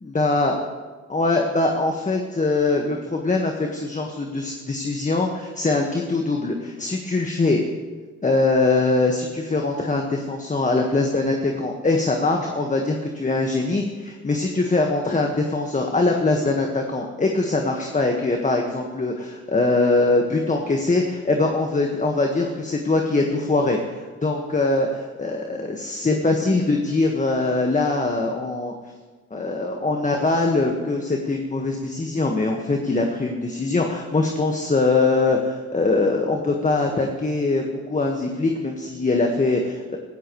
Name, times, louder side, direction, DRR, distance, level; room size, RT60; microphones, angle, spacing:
voice 1, 0.0-0.6 1.1-7.6 8.2-28.7 29.3-40.0, left 3 dB, 25° left, 2 dB, 1.6 m, -22 dB
16.0 x 14.0 x 3.2 m, 1.3 s
cardioid pair, 70°, 30 cm